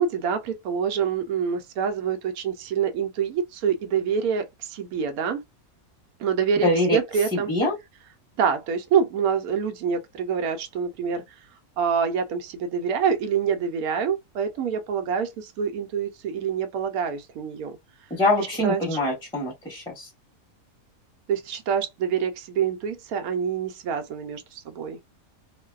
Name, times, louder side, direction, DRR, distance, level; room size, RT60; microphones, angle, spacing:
voice 1, 0.0-5.4 6.2-7.5 8.4-11.2 11.8-17.8 18.4-19.0 21.3-25.0, right 7 dB, 85° right, 1.1 m, -26 dB
voice 2, 6.6-7.0 7.5-7.7 18.1-20.1, left 1 dB, 5° left, 1.0 m, -24 dB
2.6 x 2.2 x 2.2 m
omnidirectional pair, 1.5 m